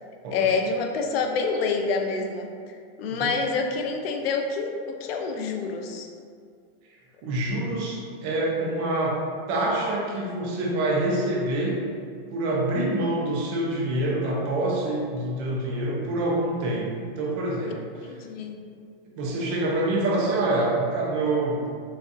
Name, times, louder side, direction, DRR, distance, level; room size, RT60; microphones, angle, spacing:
voice 1, 0.3-2.5 3.0-6.1 18.0-18.6, left 4 dB, 70° left, 4 dB, 0.5 m, -27 dB
voice 2, 3.1-3.7 7.2-9.2 9.5-11.8 12.3-17.8 19.2-21.7, right 1 dB, 30° right, -3 dB, 0.4 m, -26 dB
4.0 x 2.3 x 2.5 m, 2.2 s
supercardioid pair, 160°, 31 cm